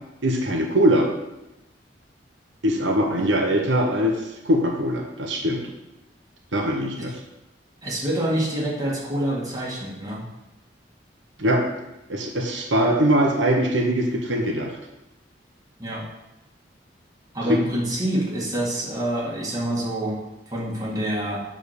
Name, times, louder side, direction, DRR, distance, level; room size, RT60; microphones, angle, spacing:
voice 1, 0.2-1.1 2.6-5.6 6.5-7.2 11.4-11.6 12.1-14.7 17.5-17.6, equal, 90° right, 1 dB, 1.1 m, -22 dB
voice 2, 7.8-10.3 15.8-16.0 17.3-20.2 20.5-21.4, right 1 dB, 20° right, -5 dB, 2.0 m, -26 dB
7.2 x 3.8 x 6.6 m, 0.96 s
head